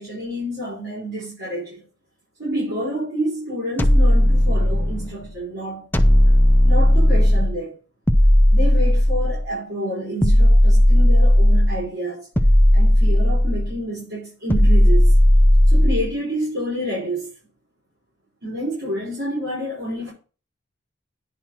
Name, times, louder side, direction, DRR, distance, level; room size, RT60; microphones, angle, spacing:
voice 1, 0.0-1.8 2.4-5.9 6.6-7.8 8.5-12.3 12.7-15.2 15.7-17.3 18.4-20.1, equal, 55° right, 5.5 m, -28 dB
sound 1, 3.8-5.1 5.9-7.6 8.1-9.5 10.2-11.8 12.4-13.8 14.5-16.1, left 1 dB, 10° left, 0.7 m, -15 dB
10.0 x 4.7 x 5.8 m
head